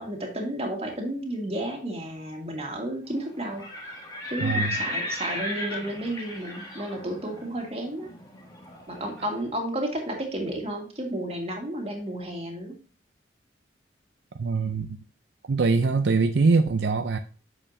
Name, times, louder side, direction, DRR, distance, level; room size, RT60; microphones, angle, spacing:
voice 1, 0.0-3.9 4.3-8.1 8.9-12.8, right 1 dB, 35° right, 1.8 m, -32 dB
Livestock farm animals working animals, 3.4-9.3, left 1 dB, 20° left, 1.6 m, -35 dB
voice 2, 4.4-4.8 14.4-15.0 15.5-17.2, right 4 dB, 70° right, 0.5 m, -23 dB
8.9 x 6.5 x 2.7 m
head